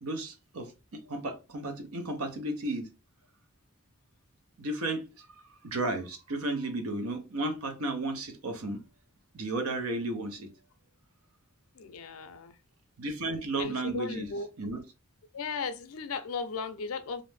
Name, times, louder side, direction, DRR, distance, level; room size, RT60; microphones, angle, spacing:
voice 1, 0.0-2.9 4.6-8.8 9.3-10.5 13.0-14.3 14.6-14.8, right 2 dB, 80° right, 0.6 m, -34 dB
voice 2, 11.7-12.5 13.6-14.5 15.3-17.2, left 4 dB, 70° left, 0.4 m, -36 dB
2.5 x 2.1 x 3.1 m
head